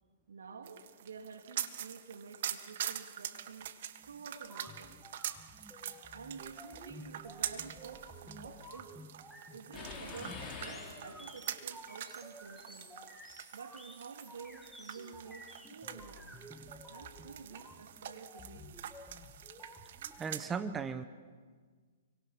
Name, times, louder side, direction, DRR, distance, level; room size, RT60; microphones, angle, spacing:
voice 1, 0.3-5.0 6.1-8.9 9.5-13.0 13.5-16.3 16.9-18.7, right 5 dB, 75° right, 3.0 m, -50 dB
sound 1, 0.6-20.5, right 10 dB, 60° right, 1.6 m, -45 dB
sound 2, 4.4-20.3, equal, ahead, 2.1 m, -53 dB
sound 3, 9.7-11.6, left 4 dB, 20° left, 5.0 m, -46 dB
voice 2, 20.2-21.0, right 5 dB, 15° right, 1.0 m, -36 dB
29.5 x 24.0 x 6.1 m
hypercardioid pair, 120°, 0 cm